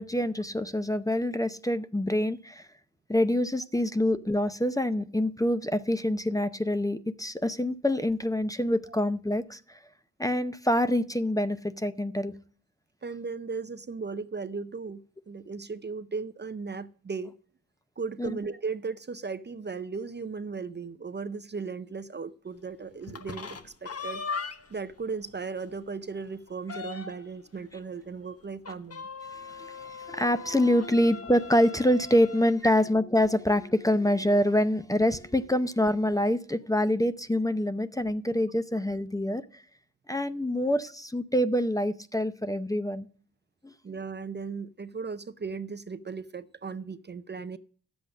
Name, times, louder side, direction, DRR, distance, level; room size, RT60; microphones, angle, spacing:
voice 1, 0.0-2.6 3.1-9.6 10.2-12.4 18.2-18.4 29.3-39.6 40.1-43.1 43.6-43.7, left 1 dB, 10° left, 0.6 m, -26 dB
voice 2, 13.0-15.0 15.3-17.4 18.0-24.2 24.7-29.1 29.6-29.7 32.6-32.7 43.8-47.6, right 4 dB, 35° right, 0.6 m, -36 dB
sound 1, 23.0-24.8 25.3-25.4 25.7-25.8 26.2-27.4 28.6-32.5, left 5 dB, 50° left, 1.1 m, -39 dB
12.0 x 7.9 x 6.3 m
wide cardioid pair, 110°, 32 cm